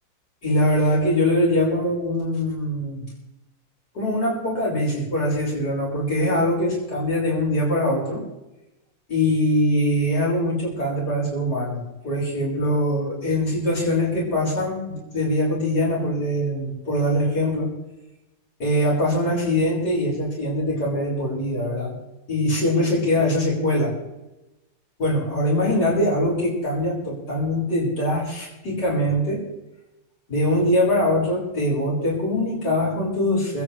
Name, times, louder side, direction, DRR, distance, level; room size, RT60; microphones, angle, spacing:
voice 1, 0.4-3.1 3.9-8.2 9.1-17.7 18.6-21.9 22.3-24.0 25.0-29.5 30.3-33.6, left 1 dB, 60° left, -5 dB, 7.2 m, -22 dB
29.0 x 9.8 x 3.5 m, 0.95 s
omnidirectional pair, 2.0 m